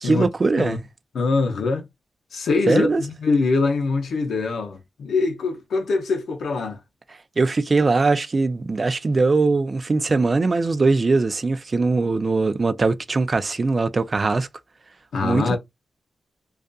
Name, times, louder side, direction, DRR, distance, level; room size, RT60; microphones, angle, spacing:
voice 1, 0.0-0.8 2.7-3.0 7.4-14.5 15.2-15.6, right 3 dB, 45° right, 0.3 m, -21 dB
voice 2, 1.1-1.9 2.3-6.8 15.1-15.6, left 3 dB, 90° left, 0.6 m, -23 dB
2.6 x 2.3 x 2.2 m
cardioid pair, 65°, 0 cm